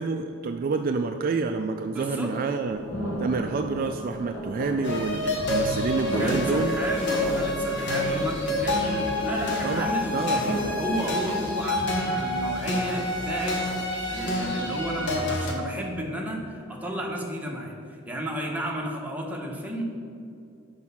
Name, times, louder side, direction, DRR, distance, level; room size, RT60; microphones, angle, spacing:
voice 1, 0.0-2.8 3.2-6.7 7.7-7.8 9.6-10.4, right 4 dB, 45° right, 6 dB, 0.3 m, -28 dB
voice 2, 1.9-2.3 6.0-13.6 13.8-19.8, equal, 10° right, -1 dB, 1.0 m, -33 dB
sound 1, 2.6-11.2, equal, 90° left, 1.5 m, -35 dB
sound 2, 4.8-15.5, left 1 dB, 60° left, 1.1 m, -28 dB
6.2 x 4.7 x 5.6 m, 2.5 s
head